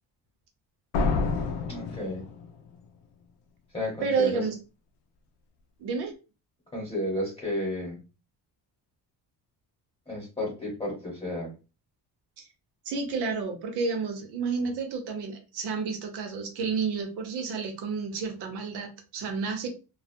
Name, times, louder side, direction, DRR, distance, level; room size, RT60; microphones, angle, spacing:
sound 1, 0.9-2.8, left 4 dB, 90° left, 0.6 m, -28 dB
voice 1, 1.7-2.3 3.7-4.4 6.7-8.0 10.1-11.5, left 1 dB, 15° left, -5 dB, 1.0 m, -32 dB
voice 2, 4.0-4.6 5.8-6.1 12.4-12.5 12.9-19.7, right 5 dB, 75° right, 5 dB, 0.8 m, -30 dB
2.2 x 2.1 x 2.6 m, 0.31 s
cardioid pair, 160°, 40 cm